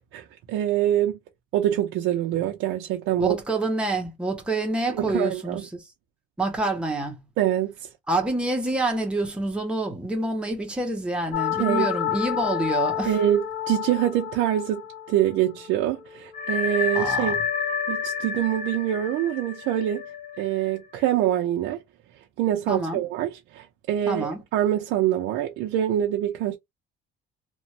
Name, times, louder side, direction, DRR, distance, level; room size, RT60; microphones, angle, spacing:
voice 1, 0.1-1.2 1.5-3.4 4.9-5.6 7.4-7.9 11.6-11.9 13.0-17.4 17.9-20.1 20.4-21.8 22.4-26.6, right 12 dB, 80° right, 0.6 m, -25 dB
voice 2, 3.2-5.8 6.4-7.2 8.1-13.1 16.9-17.4 22.7-23.0 24.1-24.4, right 2 dB, 5° right, 0.6 m, -27 dB
sound 1, 11.3-15.3 15.6-15.7 16.3-21.0, left 8 dB, 40° left, 0.7 m, -29 dB
3.0 x 2.2 x 2.6 m
cardioid pair, 180°, 20 cm